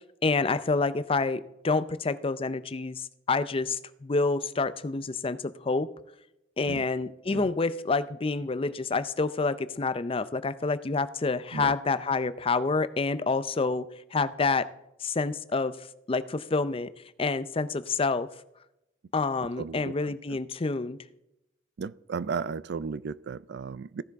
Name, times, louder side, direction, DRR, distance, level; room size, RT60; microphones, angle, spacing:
voice 1, 0.2-5.9 6.6-14.7 15.0-15.8 16.1-16.9 17.2-18.3 19.1-21.0, left 3 dB, 30° left, 0.5 m, -28 dB
voice 2, 19.4-19.9 20.3-20.4 21.8-24.0, right 5 dB, 65° right, 0.4 m, -35 dB
15.0 x 10.5 x 3.5 m
head